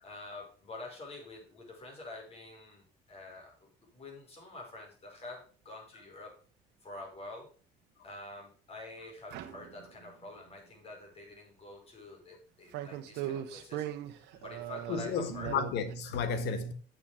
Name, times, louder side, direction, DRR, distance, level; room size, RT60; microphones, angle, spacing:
voice 1, 0.0-6.4 6.8-7.5 8.0-15.5, left 2 dB, 35° left, 5.2 m, -47 dB
sound 1, 9.3-10.3 12.7-16.0, right 11 dB, 90° right, 1.0 m, -39 dB
voice 2, 14.9-16.7, left 5 dB, 85° left, 1.5 m, -32 dB
8.7 x 6.9 x 4.9 m
cardioid pair, 110°, 17 cm